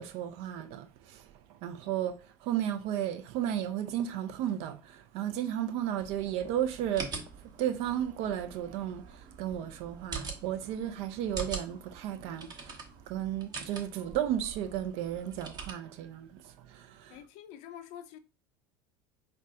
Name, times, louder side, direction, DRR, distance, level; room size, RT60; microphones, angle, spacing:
voice 1, 0.0-17.2, right 11 dB, 55° right, 0.5 m, -34 dB
sound 1, 6.0-15.7, right 5 dB, 35° right, 1.0 m, -44 dB
voice 2, 17.1-18.2, left 10 dB, 60° left, 0.6 m, -46 dB
5.1 x 2.2 x 2.6 m
hypercardioid pair, 75°, 12 cm